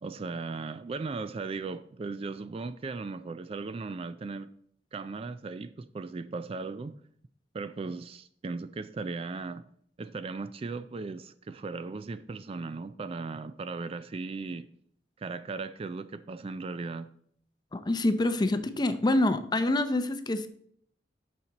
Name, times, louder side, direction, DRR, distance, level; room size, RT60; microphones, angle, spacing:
voice 1, 0.0-4.5 4.9-7.0 7.5-9.7 10.0-14.7 15.2-17.1, right 4 dB, 35° right, 13 dB, 0.3 m, -37 dB
voice 2, 17.7-20.5, left 1 dB, 25° left, 10 dB, 0.6 m, -26 dB
8.6 x 5.9 x 4.0 m, 0.65 s
head